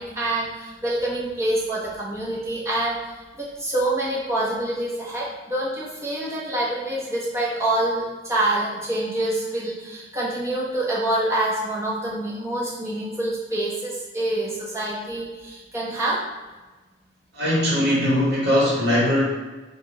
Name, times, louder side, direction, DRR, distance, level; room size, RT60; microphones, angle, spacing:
voice 1, 0.0-3.0 3.4-16.2, right 1 dB, 15° right, -6 dB, 0.9 m, -26 dB
voice 2, 17.3-19.2, equal, 70° right, -5 dB, 1.1 m, -20 dB
5.0 x 2.3 x 4.0 m, 1.2 s
head